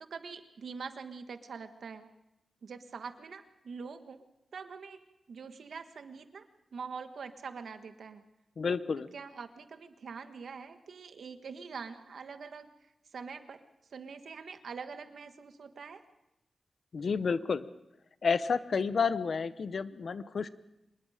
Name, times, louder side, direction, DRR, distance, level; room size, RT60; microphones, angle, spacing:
voice 1, 0.1-2.1 2.6-4.2 4.5-5.0 5.3-6.5 6.7-8.2 9.1-12.7 13.1-13.6 13.9-16.0, right 5 dB, 85° right, 8 dB, 1.5 m, -44 dB
voice 2, 8.6-9.1 16.9-17.7 18.2-20.5, left 5 dB, 65° left, 14 dB, 0.8 m, -30 dB
26.0 x 20.5 x 5.1 m, 0.90 s
wide cardioid pair, 115°, 0 cm